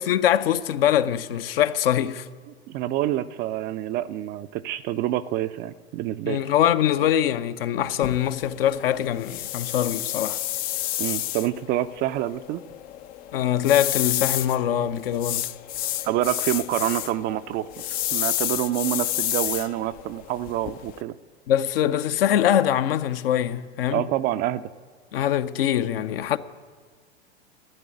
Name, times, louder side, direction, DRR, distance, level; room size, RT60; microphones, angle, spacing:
voice 1, 0.1-2.3 6.2-10.4 13.3-15.5 21.5-24.1 25.1-26.4, left 10 dB, 60° left, 0.7 m, -23 dB
voice 2, 2.7-6.4 11.0-12.6 16.0-17.7 18.1-21.1 23.9-24.6, right 14 dB, 30° right, 0.4 m, -27 dB
sound 1, 8.0-21.0, left 13 dB, 30° left, 0.4 m, -30 dB
12.0 x 9.0 x 9.9 m
figure-of-eight pair, 90°, 32 cm